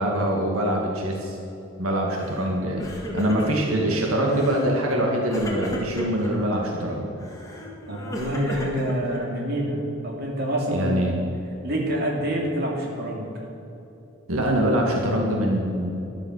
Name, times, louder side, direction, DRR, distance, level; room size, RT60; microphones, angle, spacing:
voice 1, 0.0-1.4 1.8-2.9 3.1-7.1 10.7-11.2 14.3-15.9, right 1 dB, 85° right, 0 dB, 1.9 m, -24 dB
Crying sobbing, 2.1-2.5 2.7-3.8 4.3-4.7 5.3-6.3 7.2-9.5, equal, 15° left, 1.9 m, -34 dB
voice 2, 7.9-9.8 10.0-11.2 11.6-13.3, equal, 45° right, -1 dB, 2.8 m, -27 dB
13.0 x 11.5 x 6.5 m, 3.0 s
head